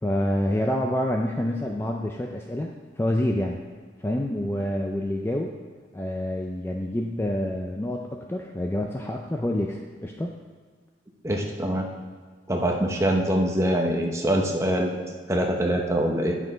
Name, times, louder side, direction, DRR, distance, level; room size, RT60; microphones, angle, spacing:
voice 1, 0.0-3.6 4.0-5.6 5.9-10.3, left 1 dB, 10° left, 1 dB, 0.3 m, -27 dB
voice 2, 11.2-11.9 12.5-16.3, right 1 dB, 15° right, 1 dB, 0.8 m, -24 dB
8.8 x 6.2 x 3.9 m, 1.5 s
head